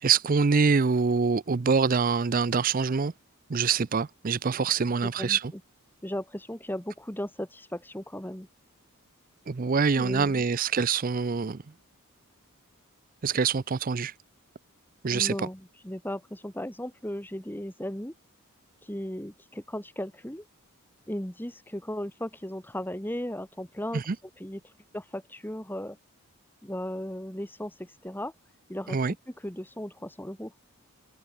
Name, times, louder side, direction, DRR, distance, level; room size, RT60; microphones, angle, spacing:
voice 1, 0.0-3.1 3.5-5.5 9.5-11.6 13.2-14.1 15.0-15.3 23.9-24.2 28.9-29.1, right 5 dB, 40° right, 0.5 m, -25 dB
voice 2, 5.0-5.6 6.0-8.5 10.0-10.4 15.1-18.1 18.8-20.4 21.1-24.0 24.4-24.6 24.9-26.0 26.6-28.3 28.7-30.5, equal, 10° left, 2.1 m, -36 dB
head